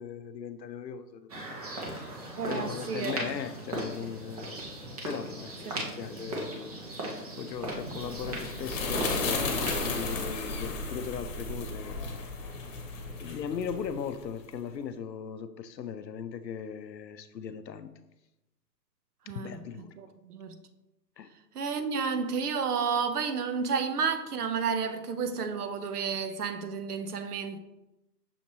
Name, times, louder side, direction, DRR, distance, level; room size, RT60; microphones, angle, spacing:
voice 1, 0.0-1.4 1.7-2.0 2.5-4.6 5.0-6.8 7.4-12.3 13.2-17.9 19.3-19.9 21.2-21.3, left 7 dB, 85° left, 0.6 m, -38 dB
sound 1, 1.3-9.8, right 1 dB, 25° right, 0.6 m, -38 dB
voice 2, 2.4-3.2 5.8-6.0 19.3-19.5 20.0-20.6 21.5-27.6, right 5 dB, 65° right, 0.7 m, -31 dB
sound 2, 7.7-14.3, left 3 dB, 50° left, 1.0 m, -34 dB
6.4 x 2.9 x 2.7 m
hypercardioid pair, 135°, 50 cm